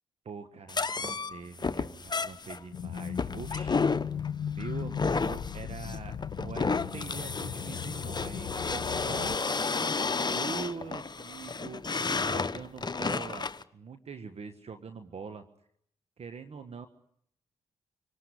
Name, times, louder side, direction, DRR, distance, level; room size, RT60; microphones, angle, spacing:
voice 1, 0.2-3.9 4.5-9.4 10.2-15.5 16.2-16.9, right 5 dB, 55° right, 9 dB, 1.4 m, -43 dB
sound 1, 0.7-13.6, left 4 dB, 35° left, 1.2 m, -32 dB
sound 2, 2.7-9.4, left 9 dB, 70° left, 1.0 m, -37 dB
26.5 x 18.0 x 9.9 m, 0.71 s
hypercardioid pair, 45°, 13 cm